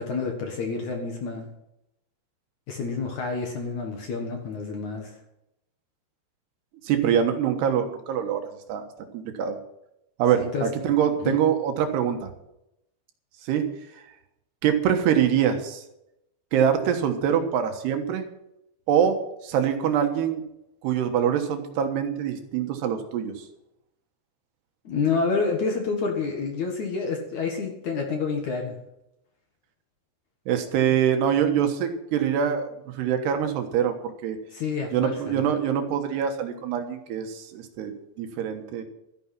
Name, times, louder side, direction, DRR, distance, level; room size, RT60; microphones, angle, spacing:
voice 1, 0.0-1.5 2.7-5.2 10.4-10.9 11.2-11.4 24.8-28.8 34.5-35.5, left 4 dB, 55° left, 2 dB, 2.5 m, -28 dB
voice 2, 6.8-8.9 9.1-9.6 10.2-12.3 13.4-13.6 14.6-15.8 16.5-18.2 18.9-20.4 20.8-23.4 30.5-32.7 32.9-34.4 34.9-38.8, right 8 dB, 75° right, 6 dB, 3.3 m, -24 dB
13.5 x 9.7 x 6.0 m, 0.83 s
omnidirectional pair, 4.9 m